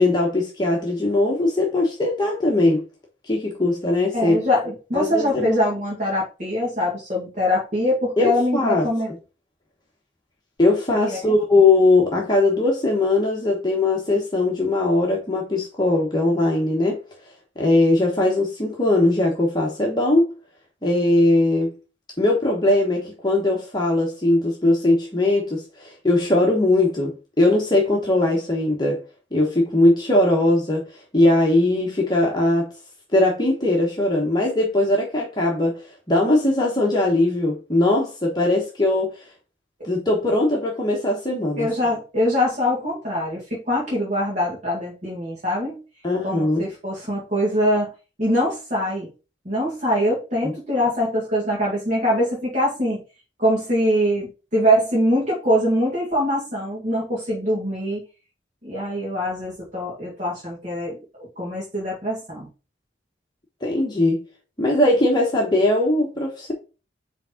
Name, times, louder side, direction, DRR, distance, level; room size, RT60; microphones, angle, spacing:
voice 1, 0.0-2.8 3.2-4.4 4.9-5.6 8.2-8.9 10.6-17.0 17.6-20.3 20.8-21.7 22.2-29.0 29.3-30.8 31.1-32.7 33.1-39.3 39.8-41.9 46.0-46.7 63.6-64.2 64.6-66.5, left 2 dB, 20° left, 1.1 m, -20 dB
voice 2, 4.1-9.1 11.0-11.3 41.6-45.8 46.2-47.9 48.2-49.1 49.5-53.0 53.4-58.0 58.6-62.5, equal, 40° right, 2.0 m, -23 dB
5.0 x 3.6 x 5.6 m
head